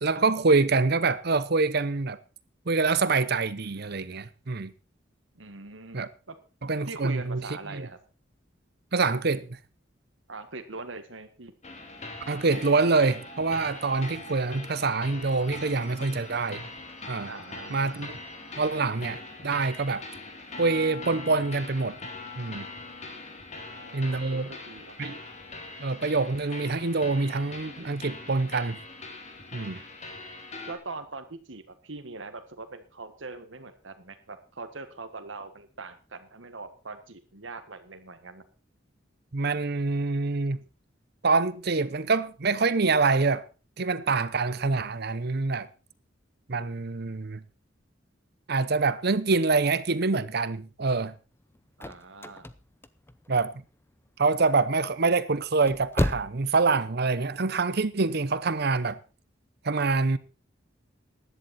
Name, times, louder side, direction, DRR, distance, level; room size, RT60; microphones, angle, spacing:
voice 1, 0.0-2.2 2.7-4.7 5.9-6.1 6.6-7.4 7.7-7.9 8.9-9.6 12.3-16.7 17.1-17.3 17.7-18.2 18.6-20.0 20.6-21.9 22.4-22.7 23.9-24.5 25.0-25.2 25.8-28.8 29.5-29.8 39.3-40.6 41.2-43.4 43.8-45.7 46.5-47.4 48.5-51.1 53.3-53.6 54.2-59.0 59.6-60.2, right 3 dB, 55° right, 0.9 m, -25 dB
voice 2, 5.3-6.0 6.3-6.4 6.9-8.0 10.3-11.5 17.2-18.1 23.5-25.0 30.7-38.4 51.8-52.5, right 3 dB, 85° right, 1.6 m, -42 dB
sound 1, 11.6-30.7, left 2 dB, 35° left, 2.5 m, -42 dB
sound 2, 51.5-53.6 54.1-54.6 55.4-56.5 56.8-56.9, left 1 dB, 10° left, 0.7 m, -31 dB
15.5 x 11.0 x 4.2 m
head